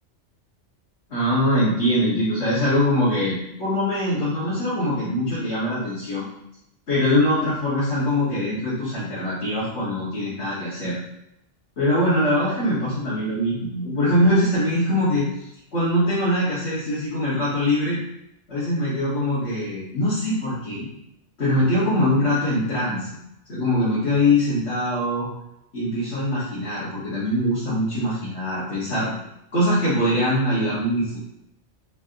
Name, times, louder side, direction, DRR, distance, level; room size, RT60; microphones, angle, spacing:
voice 1, 1.1-6.3 6.9-11.0 11.8-15.3 15.7-18.0 18.5-20.9 21.4-23.1 23.5-25.3 25.7-29.1 29.5-31.2, left 1 dB, 70° left, -11 dB, 1.9 m, -22 dB
4.0 x 2.8 x 3.8 m, 0.82 s
omnidirectional pair, 1.2 m